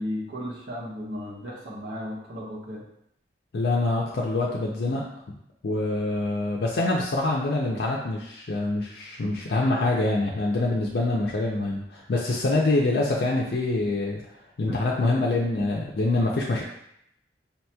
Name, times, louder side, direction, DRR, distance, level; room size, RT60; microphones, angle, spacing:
voice 1, 0.0-2.9 14.7-15.2, equal, 80° right, -4 dB, 1.0 m, -35 dB
voice 2, 3.5-5.3 5.6-14.2 14.6-16.6, left 2 dB, 60° left, -2 dB, 0.4 m, -25 dB
5.5 x 2.9 x 2.2 m, 0.76 s
head